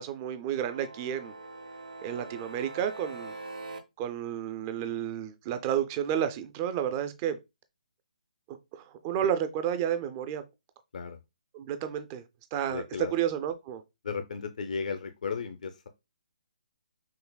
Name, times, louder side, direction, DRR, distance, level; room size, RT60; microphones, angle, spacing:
voice 1, 0.0-1.3 2.0-3.3 4.0-7.4 8.5-10.4 11.5-12.2 12.5-12.8 13.1-13.8, right 9 dB, 20° right, 0.3 m, -31 dB
sound 1, 0.6-3.8, right 2 dB, 75° right, 0.8 m, -43 dB
voice 2, 12.7-13.1 14.0-15.9, left 5 dB, 65° left, 0.5 m, -35 dB
5.5 x 2.0 x 2.2 m
hypercardioid pair, 160°, 4 cm